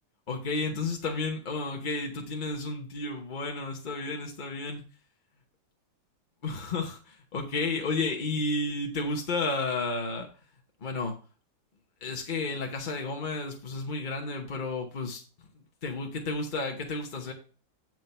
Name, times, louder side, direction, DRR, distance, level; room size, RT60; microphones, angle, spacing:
voice 1, 0.3-4.8 6.4-10.3 10.8-11.1 12.0-15.2 15.8-17.3, left 3 dB, 40° left, 3 dB, 0.7 m, -32 dB
9.1 x 4.6 x 5.4 m, 0.38 s
omnidirectional pair, 2.1 m